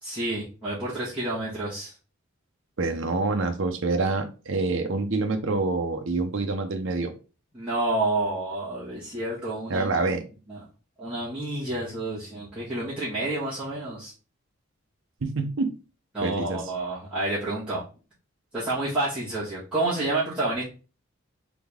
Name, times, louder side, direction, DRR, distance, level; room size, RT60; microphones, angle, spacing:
voice 1, 0.0-1.9 7.5-10.0 10.5-10.6 11.0-14.1 16.1-17.8 18.5-20.6, right 2 dB, 5° right, -13 dB, 1.6 m, -29 dB
voice 2, 2.8-7.1 9.7-10.2 15.2-15.7 16.2-16.6, right 3 dB, 65° right, 5 dB, 0.6 m, -26 dB
3.8 x 3.5 x 3.5 m, 0.34 s
head